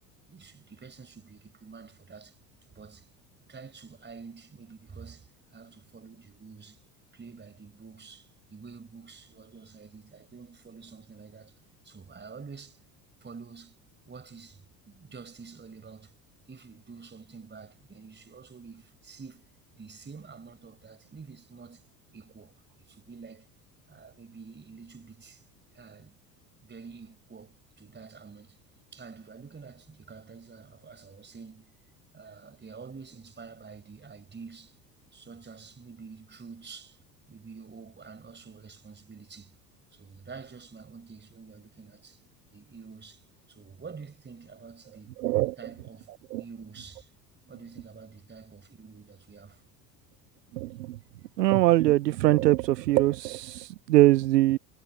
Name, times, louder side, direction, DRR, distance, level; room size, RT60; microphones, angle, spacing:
voice 1, 0.3-2.4 2.7-3.1 3.5-6.8 7.1-11.6 11.8-12.8 13.2-13.8 14.0-16.2 16.5-19.5 19.7-21.9 22.1-23.5 23.9-25.4 25.7-26.2 26.6-28.6 28.9-31.7 32.1-34.8 35.1-37.0 37.3-39.5 39.9-42.2 42.5-45.2 45.6-46.1 46.4-47.1 47.5-49.6, right 5 dB, 20° right, 4.8 m, -48 dB
voice 2, 45.2-45.6 46.3-46.4 50.5-51.0 51.4-54.6, right 16 dB, 75° right, 0.6 m, -22 dB
figure-of-eight pair, 65°, 50 cm